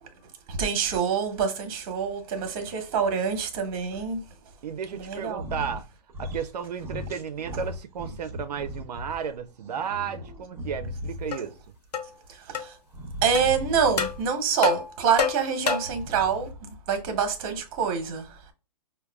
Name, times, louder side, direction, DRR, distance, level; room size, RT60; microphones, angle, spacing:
voice 1, 0.0-4.5 4.9-5.5 11.4-11.5 12.3-12.8 13.2-18.5, right 6 dB, 35° right, 0.9 m, -27 dB
voice 2, 4.6-5.8 6.2-11.5, right 7 dB, 85° right, 0.4 m, -33 dB
sound 1, 5.3-5.8 6.1-6.5 6.8-9.2 9.6-11.5 12.9-14.3 15.7-16.8, left 1 dB, 10° right, 0.7 m, -37 dB
sound 2, 11.3-11.4 11.9-12.1 12.5-12.7 13.3-13.5 14.0-14.2 14.6-16.0, left 6 dB, 85° left, 0.8 m, -27 dB
5.0 x 2.2 x 2.2 m
hypercardioid pair, 145°, 20 cm